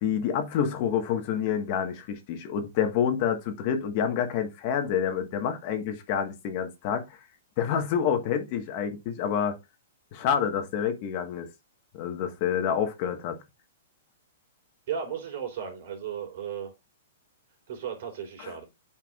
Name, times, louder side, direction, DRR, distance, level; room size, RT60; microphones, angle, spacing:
voice 1, 0.0-7.2 7.6-9.6 10.1-11.5 11.9-13.4 18.4-18.5, left 8 dB, 40° left, 1.3 m, -28 dB
voice 2, 14.9-16.7 17.7-18.6, right 8 dB, 55° right, 3.6 m, -35 dB
9.3 x 4.7 x 2.4 m
hypercardioid pair, 160°, 0 cm